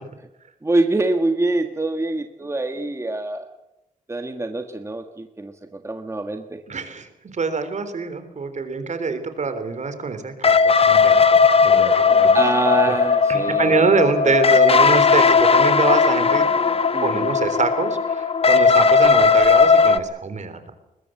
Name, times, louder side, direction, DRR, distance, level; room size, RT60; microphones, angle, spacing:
voice 1, 0.6-3.5 4.1-6.6 12.3-14.0 14.2-14.4 16.9-17.3, right 2 dB, 20° right, 6 dB, 1.5 m, -25 dB
voice 2, 6.7-11.4 11.6-12.3 13.3-16.4 17.0-20.7, right 4 dB, 55° right, 9 dB, 3.6 m, -25 dB
sound 1, 10.4-20.0, left 5 dB, 40° left, 1.1 m, -16 dB
21.5 x 20.5 x 7.8 m, 0.93 s
wide cardioid pair, 100°, 15 cm